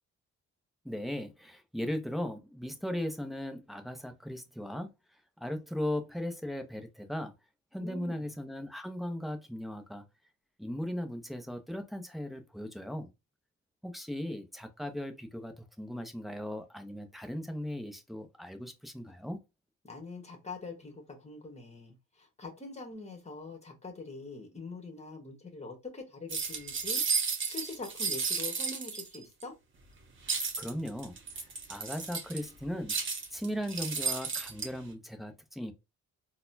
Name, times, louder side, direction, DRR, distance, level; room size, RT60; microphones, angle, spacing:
voice 1, 0.8-4.9 5.4-7.3 7.7-10.0 10.6-13.1 13.8-19.4 30.3-31.2 31.7-32.9 33.3-35.7, left 1 dB, ahead, 0.7 m, -37 dB
voice 2, 7.8-8.3 19.8-27.0 27.4-29.5, left 3 dB, 20° left, 1.3 m, -44 dB
sound 1, 26.3-29.4 30.3-32.5 32.9-34.7, right 5 dB, 40° right, 1.1 m, -33 dB
4.0 x 2.3 x 2.6 m
cardioid pair, 90°, 30 cm